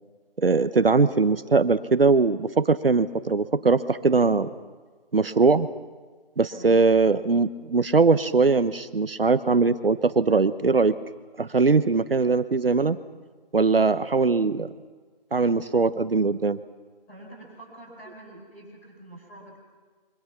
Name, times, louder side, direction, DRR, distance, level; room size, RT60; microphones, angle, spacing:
voice 1, 0.4-4.5 5.1-5.7 6.4-11.0 11.4-13.0 13.5-14.7 15.3-16.6, right 4 dB, 70° right, 12 dB, 1.1 m, -21 dB
voice 2, 6.5-6.8 17.1-19.6, right 1 dB, 5° left, -8 dB, 4.8 m, -46 dB
27.5 x 24.5 x 6.1 m, 1.4 s
figure-of-eight pair, 180°, 30 cm